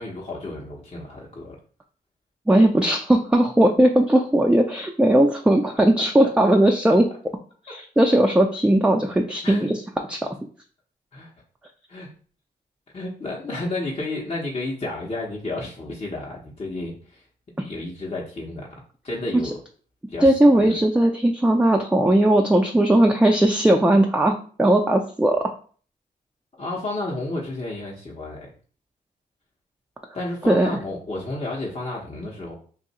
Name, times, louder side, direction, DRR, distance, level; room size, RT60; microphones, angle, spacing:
voice 1, 0.0-1.6 6.2-6.3 9.4-9.7 11.1-11.3 11.9-12.1 12.9-17.3 17.7-18.8 19.0-19.6 20.1-20.8 26.6-28.5 30.1-32.5, left 2 dB, 35° left, -3 dB, 0.9 m, -31 dB
voice 2, 2.5-7.1 7.7-9.8 10.1-10.2 17.6-17.7 20.2-24.3 24.6-25.5 30.5-30.7, right 1 dB, 5° right, 2 dB, 0.4 m, -18 dB
2.6 x 2.4 x 4.1 m, 0.43 s
supercardioid pair, 55°, 18 cm